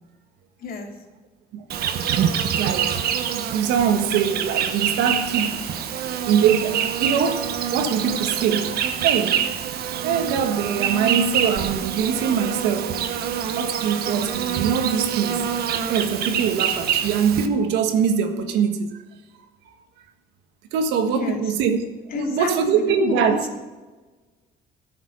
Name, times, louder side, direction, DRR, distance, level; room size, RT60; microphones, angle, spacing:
Insect, 1.7-17.5, right 8 dB, 70° right, 1.3 m, -25 dB
voice 1, 2.6-5.7 6.3-9.4 10.0-13.0 13.6-15.4 15.9-19.0 20.7-21.8 22.1-23.4, right 7 dB, 90° right, 1.6 m, -23 dB
voice 2, 21.1-21.4 22.1-23.6, left 5 dB, 60° left, 2.7 m, -29 dB
13.5 x 7.1 x 8.6 m
cardioid pair, 110°, 17 cm